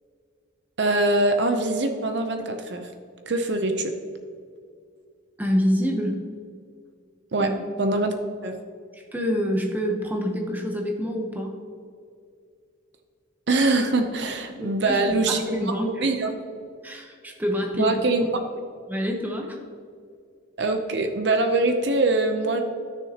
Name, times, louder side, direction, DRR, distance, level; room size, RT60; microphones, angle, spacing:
voice 1, 0.8-2.9 3.3-3.9 7.3-7.5 7.8-8.2 8.4-8.6 13.5-15.4 16.0-16.3 17.8-18.3 20.6-22.6, right 2 dB, 55° right, 6 dB, 0.7 m, -23 dB
voice 2, 5.4-6.2 7.4-7.5 7.8-8.0 8.9-11.5 14.6-16.1 16.8-17.9 18.9-19.6, equal, 10° right, 1 dB, 0.9 m, -27 dB
13.5 x 6.4 x 2.9 m, 2.3 s
head